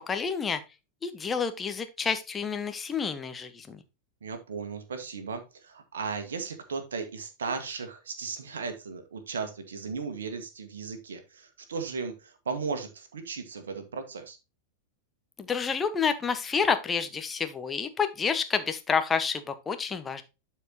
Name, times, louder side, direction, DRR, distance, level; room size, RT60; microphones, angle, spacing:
voice 1, 0.1-0.6 1.0-3.8 15.4-20.2, left 6 dB, 20° left, 9 dB, 1.1 m, -29 dB
voice 2, 4.2-14.4, right 5 dB, 65° right, 8 dB, 1.7 m, -36 dB
11.5 x 4.7 x 2.9 m, 0.27 s
figure-of-eight pair, 90°, 0 cm